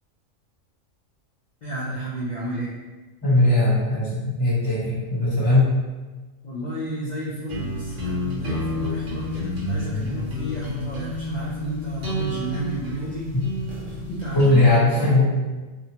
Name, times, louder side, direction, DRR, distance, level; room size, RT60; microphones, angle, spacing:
voice 1, 1.6-2.7 6.4-13.3 13.9-15.3, right 2 dB, 80° left, -7 dB, 0.4 m, -31 dB
voice 2, 3.2-5.7 13.3-13.4 14.3-15.3, left 2 dB, 20° left, -11 dB, 1.0 m, -19 dB
sound 1, 7.5-14.7, left 2 dB, 70° right, 1.1 m, -30 dB
2.6 x 2.1 x 2.8 m, 1.3 s
omnidirectional pair, 1.3 m